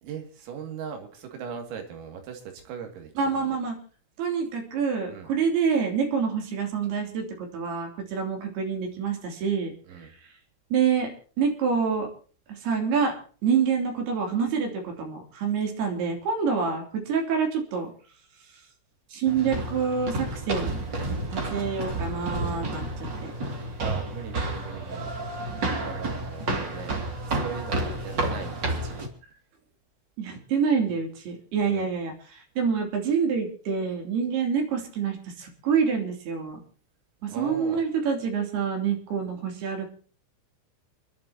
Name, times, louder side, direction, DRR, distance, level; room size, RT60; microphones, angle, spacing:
voice 1, 0.0-3.5 5.1-5.3 9.9-10.1 22.5-22.7 23.8-25.1 25.8-26.9 27.3-29.0 31.7-31.9 37.3-37.8, right 7 dB, 80° right, 4 dB, 5.1 m, -39 dB
voice 2, 3.2-3.8 4.2-9.7 10.0-10.1 10.7-11.1 11.4-12.1 12.5-13.1 13.4-17.9 19.1-20.8 21.3-23.3 30.2-36.6 37.2-39.9, right 6 dB, 55° right, 3 dB, 4.7 m, -27 dB
sound 1, 19.3-29.1, right 2 dB, 35° right, 1.8 m, -31 dB
30.0 x 11.0 x 2.9 m, 0.40 s
omnidirectional pair, 5.9 m